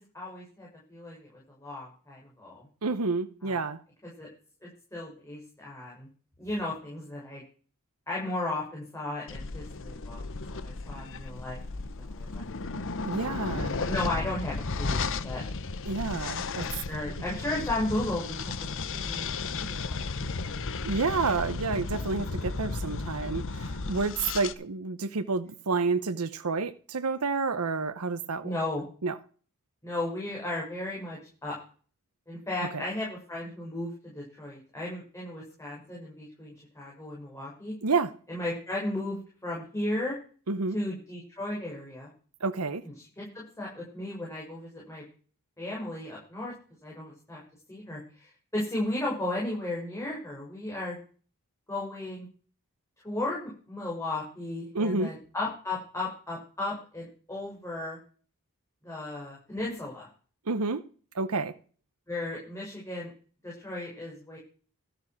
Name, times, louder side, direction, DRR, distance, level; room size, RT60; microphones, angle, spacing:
voice 1, 0.1-2.6 3.4-3.6 4.2-4.3 4.6-6.1 6.4-7.4 8.1-10.2 10.6-11.6 12.0-12.9 13.8-15.4 16.5-18.5 18.9-19.3 19.6-20.7 28.4-28.8 29.8-31.5 32.3-37.7 38.3-40.2 40.7-42.1 43.0-45.0 45.6-46.5 46.8-47.4 47.7-51.0 51.7-52.3 53.0-53.4 53.7-58.0 58.8-60.1 62.1-63.1 63.4-64.4, left 2 dB, 15° left, 6.7 m, -35 dB
voice 2, 2.8-3.8 13.0-13.8 15.9-16.6 20.8-28.5 29.0-29.2 32.7-32.8 37.8-38.1 40.5-40.8 42.4-42.8 54.7-55.1 60.5-60.8 61.1-61.6, right 4 dB, 80° right, 0.9 m, -29 dB
sound 1, 9.3-24.5, left 3 dB, 60° left, 1.0 m, -34 dB
14.0 x 8.0 x 6.1 m
head